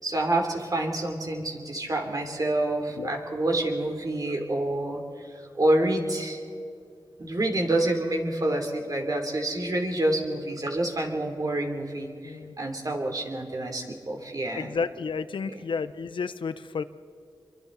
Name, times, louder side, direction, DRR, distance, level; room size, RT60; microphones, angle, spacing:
voice 1, 0.0-6.4 7.2-14.7 15.4-15.6, right 1 dB, 45° right, 2 dB, 3.3 m, -28 dB
voice 2, 12.2-12.5 14.5-16.8, left 5 dB, 90° left, 12 dB, 0.8 m, -31 dB
27.0 x 23.5 x 4.1 m, 2.3 s
wide cardioid pair, 70°, 8 cm